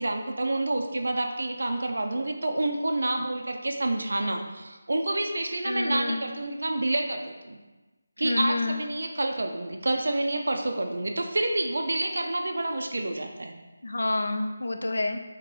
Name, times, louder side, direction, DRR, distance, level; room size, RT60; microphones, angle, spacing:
voice 1, 0.0-7.6 8.2-13.5, right 2 dB, 70° right, 3 dB, 0.4 m, -28 dB
voice 2, 5.6-6.2 8.2-8.8 13.8-15.2, left 2 dB, 80° left, 7 dB, 0.4 m, -28 dB
2.9 x 2.8 x 3.7 m, 1.2 s
figure-of-eight pair, 175°, 0 cm